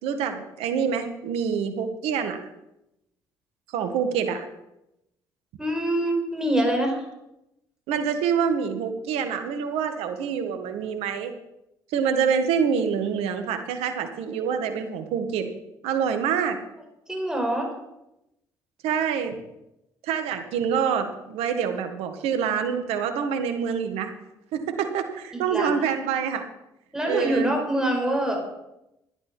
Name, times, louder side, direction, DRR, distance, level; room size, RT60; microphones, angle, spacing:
voice 1, 0.0-2.4 3.7-4.5 7.9-11.3 11.9-15.5 15.8-16.6 18.8-19.4 20.0-24.1 24.5-26.4 27.0-27.5, right 7 dB, 75° right, 7 dB, 1.8 m, -26 dB
voice 2, 5.6-7.0 17.1-17.7 25.3-25.7 26.9-28.4, right 1 dB, 5° right, 1 dB, 5.4 m, -25 dB
13.0 x 10.5 x 6.2 m, 0.88 s
hypercardioid pair, 55°, 10 cm